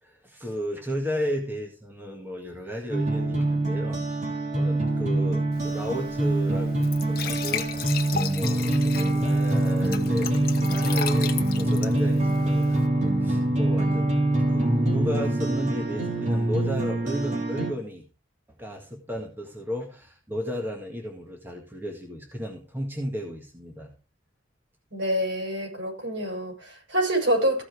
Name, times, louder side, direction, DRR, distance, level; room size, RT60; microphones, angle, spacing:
voice 1, 0.0-4.0 4.5-7.9 8.1-14.1 14.5-18.0 18.6-23.9, equal, 10° right, 1.8 m, -34 dB
sound 1, 2.9-17.7, right 1 dB, 35° right, 3.5 m, -24 dB
Glass / Trickle dribble / Fill (with liquid), 5.5-12.9, left 8 dB, 50° left, 1.2 m, -36 dB
voice 2, 24.9-27.6, right 1 dB, 65° right, 6.8 m, -26 dB
15.0 x 6.0 x 4.8 m
head